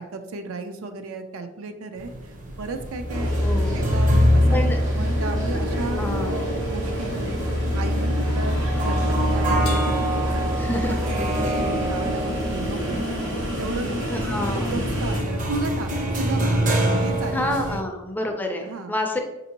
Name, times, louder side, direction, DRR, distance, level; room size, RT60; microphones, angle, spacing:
voice 1, 0.0-3.4 3.7-7.4 7.7-13.0 13.6-14.0 14.5-16.7 17.0-17.8 18.6-18.9, right 3 dB, 85° right, 7 dB, 0.4 m, -34 dB
sound 1, 2.0-17.8, equal, 40° right, 0.6 m, -24 dB
sound 2, 3.1-15.2, equal, 65° right, 1.2 m, -30 dB
voice 2, 3.4-3.8 4.5-4.8 5.8-6.4 10.6-11.0 14.1-14.9 17.3-19.2, left 1 dB, 10° left, 3 dB, 0.4 m, -28 dB
Crash cymbal, 9.6-11.4, left 7 dB, 85° left, 0.5 m, -41 dB
5.1 x 2.7 x 2.8 m, 0.99 s
head